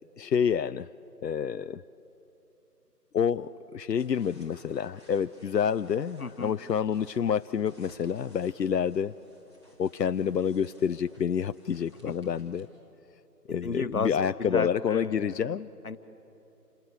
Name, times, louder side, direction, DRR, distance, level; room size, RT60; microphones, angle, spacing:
voice 1, 0.2-0.9 1.2-1.8 3.1-9.1 9.8-12.7 13.5-15.7, left 7 dB, 90° left, 11 dB, 0.7 m, -28 dB
sound 1, 4.0-12.7, equal, 15° right, 2.3 m, -58 dB
voice 2, 6.2-6.5 13.6-15.6 15.8-16.0, left 4 dB, 60° left, 11 dB, 1.3 m, -33 dB
28.5 x 19.5 x 8.2 m, 3.0 s
figure-of-eight pair, 175°, 48 cm